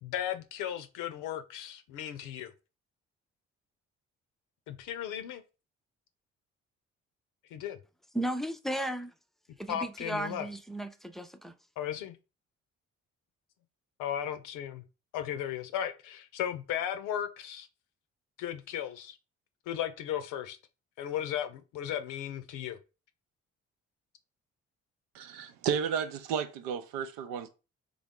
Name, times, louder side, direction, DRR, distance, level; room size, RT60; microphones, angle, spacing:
voice 1, 0.0-2.5 4.7-5.4 7.5-7.8 9.7-10.5 11.8-12.2 14.0-14.8 15.1-17.7 18.4-19.2 19.7-20.6 21.0-22.8, left 10 dB, 60° left, 0.7 m, -35 dB
voice 2, 8.1-9.1 9.6-11.5, right 1 dB, ahead, 0.5 m, -35 dB
voice 3, 25.1-27.5, right 7 dB, 70° right, 0.7 m, -33 dB
3.8 x 3.4 x 3.6 m
figure-of-eight pair, 45°, 35 cm